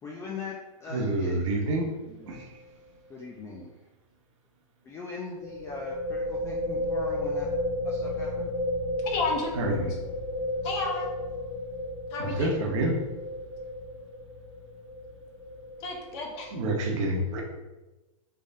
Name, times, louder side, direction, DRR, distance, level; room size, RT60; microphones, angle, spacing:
voice 1, 0.0-1.4 3.1-3.7 4.8-7.5 7.8-8.5, left 4 dB, 15° left, -2 dB, 0.4 m, -40 dB
voice 2, 0.9-2.6 9.5-9.9 12.2-13.0 16.5-17.4, right 1 dB, 55° right, 0 dB, 1.0 m, -28 dB
sound 1, 2.3-2.5 2.8-2.9 5.4-16.7, left 1 dB, 80° left, 1.2 m, -33 dB
voice 3, 9.0-9.5 10.6-11.1 12.1-12.5 15.8-16.5, left 3 dB, 45° left, 1 dB, 1.0 m, -31 dB
3.6 x 3.5 x 2.6 m, 1.1 s
hypercardioid pair, 130°, 18 cm